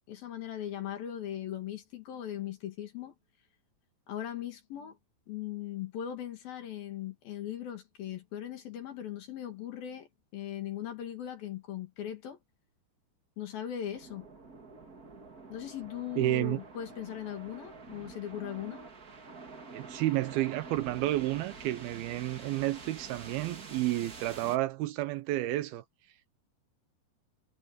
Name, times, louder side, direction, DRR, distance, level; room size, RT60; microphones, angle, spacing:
voice 1, 0.1-3.2 4.1-5.0 5.3-12.4 13.4-14.3 15.5-18.8, left 11 dB, 65° left, 3.6 m, -39 dB
sound 1, 13.9-24.6, right 4 dB, 35° right, 1.4 m, -47 dB
voice 2, 16.2-16.6 19.7-25.8, right 16 dB, 75° right, 2.4 m, -31 dB
omnidirectional pair, 4.7 m